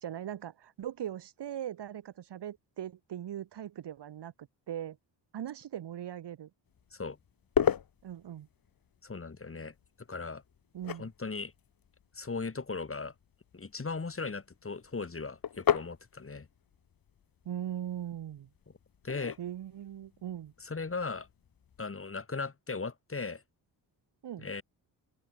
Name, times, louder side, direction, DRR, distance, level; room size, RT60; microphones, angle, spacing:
voice 1, 0.0-5.0 5.3-6.5 8.0-8.5 10.7-11.1 17.5-18.5 19.4-20.5 24.2-24.5, right 10 dB, 65° right, 1.8 m, -40 dB
sound 1, 6.7-21.8, left 8 dB, 50° left, 1.9 m, -38 dB
voice 2, 9.0-9.7 10.1-10.4 11.0-11.5 12.1-13.1 13.5-16.5 19.0-19.4 20.6-21.3 21.8-23.4 24.4-24.6, left 4 dB, 30° left, 4.9 m, -37 dB
open air
cardioid pair, 90°, 43 cm